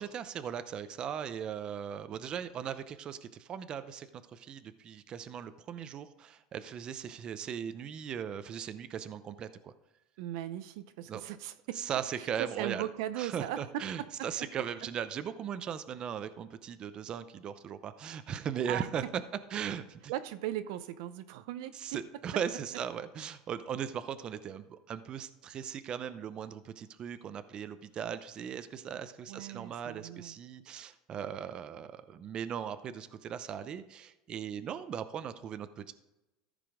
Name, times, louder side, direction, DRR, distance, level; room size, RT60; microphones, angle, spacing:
voice 1, 0.0-9.7 11.1-11.2 11.8-12.9 13.2-19.0 19.5-20.1 21.7-35.9, right 8 dB, 35° right, 12 dB, 0.6 m, -38 dB
voice 2, 10.2-11.8 12.2-14.1 18.6-18.9 20.1-21.8 29.3-30.4, right 12 dB, 75° right, 12 dB, 0.6 m, -38 dB
14.0 x 5.0 x 5.0 m, 0.96 s
supercardioid pair, 135°, 3 cm